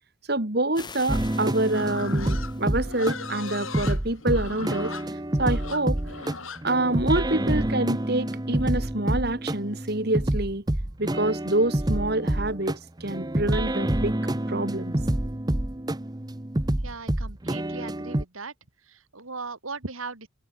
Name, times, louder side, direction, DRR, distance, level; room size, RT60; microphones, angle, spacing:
voice 1, 0.3-4.9 5.4-6.0 6.6-10.6 11.0-14.2 14.5-14.9, right 2 dB, 50° right, 2.8 m, -26 dB
sound 1, 0.7-3.3, left 5 dB, 20° left, 3.4 m, -46 dB
sound 2, 1.1-18.2, right 1 dB, 20° right, 0.8 m, -28 dB
Livestock farm animals working animals, 1.7-7.7, left 4 dB, 75° left, 7.5 m, -39 dB
voice 2, 16.8-18.5 18.8-20.3, right 4 dB, 80° right, 2.6 m, -38 dB
head